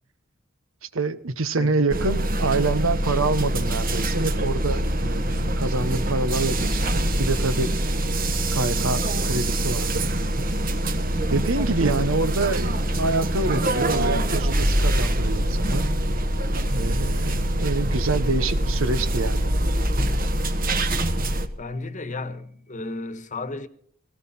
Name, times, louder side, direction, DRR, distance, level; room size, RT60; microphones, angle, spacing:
voice 1, 0.8-7.7 8.5-10.1 11.3-15.9 16.7-19.5, right 3 dB, 75° right, 1.1 m, -26 dB
sound 1, 1.9-21.5, right 1 dB, 45° right, 1.4 m, -24 dB
voice 2, 21.6-23.7, left 2 dB, 40° left, 1.3 m, -33 dB
18.0 x 17.5 x 4.3 m
head